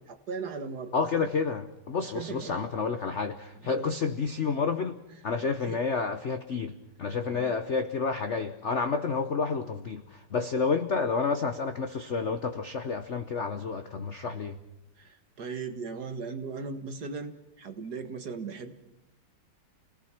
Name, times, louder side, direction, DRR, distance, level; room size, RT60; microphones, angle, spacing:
voice 1, 0.1-1.3 2.1-2.6 3.6-4.0 5.1-5.8 7.3-7.6 15.0-18.8, right 4 dB, 50° right, 7 dB, 1.9 m, -38 dB
voice 2, 0.9-5.0 5.2-14.6, left 5 dB, 55° left, 9 dB, 0.8 m, -30 dB
28.5 x 18.5 x 6.0 m, 0.91 s
omnidirectional pair, 2.4 m